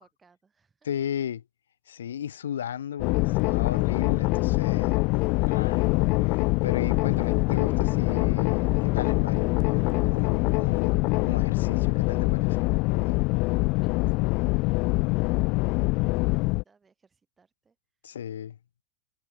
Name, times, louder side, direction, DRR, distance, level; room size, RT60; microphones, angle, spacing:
voice 1, 0.0-0.9 13.8-15.2 15.8-17.8, right 5 dB, 15° right, 7.1 m, -64 dB
voice 2, 0.8-1.4 1.9-5.0 5.4-5.9 6.2-13.2 18.0-18.6, left 9 dB, 65° left, 1.1 m, -35 dB
sound 1, 3.0-16.6, left 26 dB, 40° left, 0.4 m, -24 dB
figure-of-eight pair, 90°, 0 cm